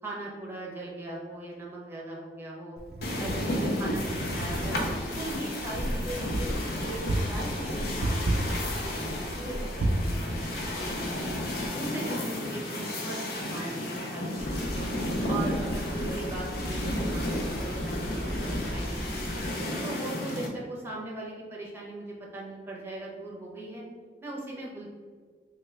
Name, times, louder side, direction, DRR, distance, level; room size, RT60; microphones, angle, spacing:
voice 1, 0.0-2.8 3.2-4.8 5.1-11.3 11.7-14.9 15.3-19.4 19.8-23.8 24.2-24.9, right 2 dB, 15° right, -4 dB, 0.7 m, -39 dB
Wind, 2.8-11.7, right 1 dB, 60° right, 0.4 m, -33 dB
sound 1, 3.0-20.5, left 1 dB, 60° left, 0.6 m, -33 dB
sound 2, 14.4-19.5, equal, 80° left, 1.1 m, -36 dB
3.1 x 2.3 x 3.2 m, 1.5 s
head